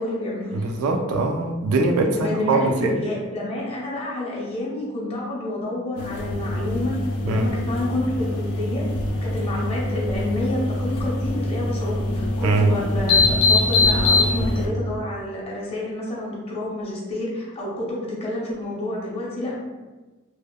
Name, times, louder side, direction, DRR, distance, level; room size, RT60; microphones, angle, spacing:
voice 1, 0.0-0.6 1.9-7.0 7.3-8.8 9.2-19.6, left 1 dB, 30° left, -5 dB, 0.6 m, -29 dB
voice 2, 0.5-3.0 7.2-7.5 12.4-12.7, right 3 dB, 75° right, 4 dB, 0.3 m, -22 dB
sound 1, 6.0-14.7, left 2 dB, 85° left, 0.4 m, -23 dB
2.8 x 2.0 x 2.2 m, 1.2 s
head